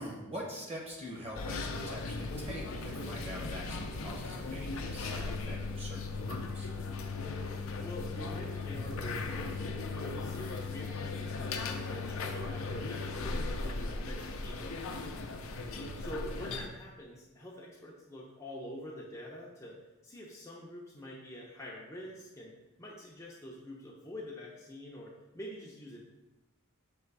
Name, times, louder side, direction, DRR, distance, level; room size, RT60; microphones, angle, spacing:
voice 1, 0.0-6.7 15.7-16.0, equal, 25° right, -2 dB, 1.2 m, -44 dB
sound 1, 1.3-16.7, left 3 dB, 65° left, 0.6 m, -37 dB
voice 2, 7.5-9.7 9.9-14.9 16.0-19.8 20.0-22.5 22.8-26.0, left 1 dB, 15° left, -5 dB, 0.7 m, -46 dB
6.7 x 3.1 x 4.6 m, 1.0 s
head